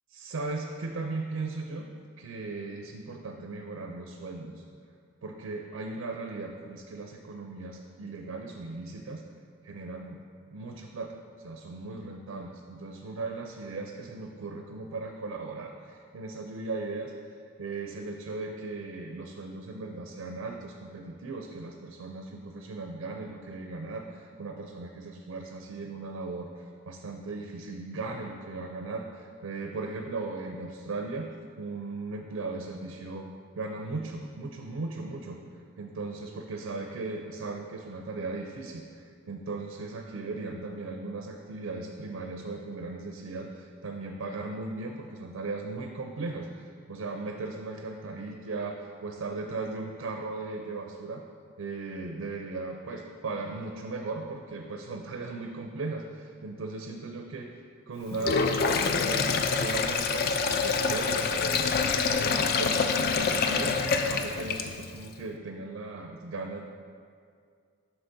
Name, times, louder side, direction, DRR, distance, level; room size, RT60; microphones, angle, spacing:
voice 1, 0.1-1.9 2.2-4.6 5.2-9.2 9.6-10.2 10.5-17.1 17.6-33.3 33.6-35.4 35.8-51.2 51.6-57.5 57.9-61.7 62.0-66.6, right 3 dB, 80° right, 3 dB, 0.4 m, -37 dB
Sink (filling or washing), 58.1-65.0, left 5 dB, 45° left, 0.3 m, -26 dB
7.9 x 5.7 x 2.6 m, 2.3 s
head